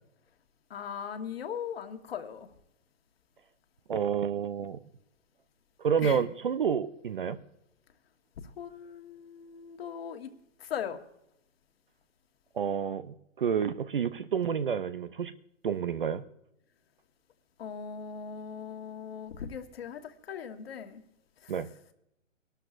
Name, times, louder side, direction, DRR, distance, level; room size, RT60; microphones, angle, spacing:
voice 1, 0.7-2.5 6.0-6.2 8.6-10.3 10.6-11.0 17.6-21.0 21.4-21.5, left 7 dB, 50° left, 7 dB, 1.3 m, -39 dB
voice 2, 3.9-4.8 5.8-7.4 12.6-15.3 15.6-16.2 21.5-21.7, right 7 dB, 45° right, 14 dB, 0.5 m, -29 dB
24.5 x 12.5 x 2.5 m, 0.83 s
hypercardioid pair, 165°, 39 cm